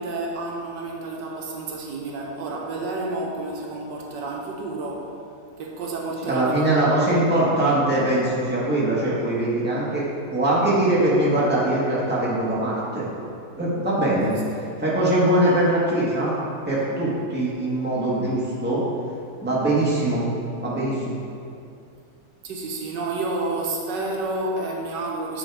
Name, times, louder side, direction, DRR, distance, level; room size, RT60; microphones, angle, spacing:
voice 1, 0.0-5.2 5.6-7.2 14.3-14.4 22.4-25.4, right 2 dB, 85° right, -1 dB, 1.6 m, -30 dB
voice 2, 6.3-13.1 13.6-14.3 14.8-16.3 16.7-18.8 19.4-20.2 20.6-21.1, right 1 dB, 5° right, -8 dB, 1.3 m, -22 dB
8.9 x 3.7 x 4.7 m, 2.5 s
omnidirectional pair, 1.9 m